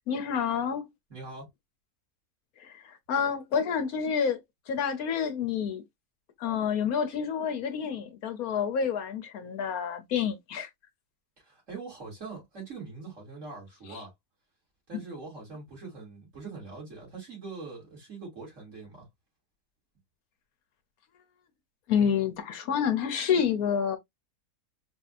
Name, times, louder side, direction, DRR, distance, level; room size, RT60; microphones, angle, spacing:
voice 1, 0.1-0.8 2.6-4.4 4.7-5.8 6.4-10.7 13.9-14.0 21.9-24.0, left 7 dB, 70° left, 1.1 m, -28 dB
voice 2, 1.1-1.5 11.4-14.1 14.9-19.1, right 4 dB, 50° right, 2.8 m, -43 dB
4.8 x 2.7 x 2.4 m
omnidirectional pair, 1.7 m